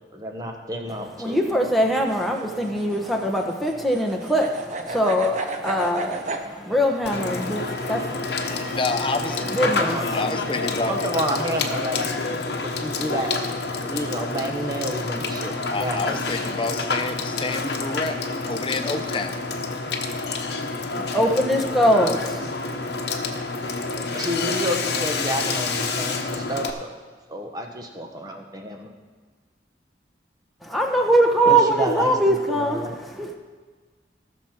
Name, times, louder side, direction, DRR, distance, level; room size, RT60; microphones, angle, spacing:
voice 1, 0.1-1.4 9.6-10.0 10.9-12.0 12.6-13.3 13.8-15.5 15.8-16.2 24.1-26.9 27.3-28.9 31.5-33.0, equal, 20° right, 3 dB, 1.2 m, -29 dB
voice 2, 1.2-8.8 9.5-10.2 20.9-22.5 30.6-33.3, right 1 dB, ahead, 0 dB, 1.1 m, -22 dB
sound 1, 1.7-6.5, right 2 dB, 40° right, 0.8 m, -33 dB
sound 2, 5.5-11.5, equal, 65° right, 2.6 m, -43 dB
Water / Water tap faucet / Sink (filling or washing), 7.0-26.7, left 3 dB, 65° left, 1.0 m, -28 dB
voice 3, 8.5-9.5 10.1-11.0 15.7-19.4, left 3 dB, 30° left, 8 dB, 0.6 m, -28 dB
18.0 x 6.4 x 4.5 m, 1.4 s
head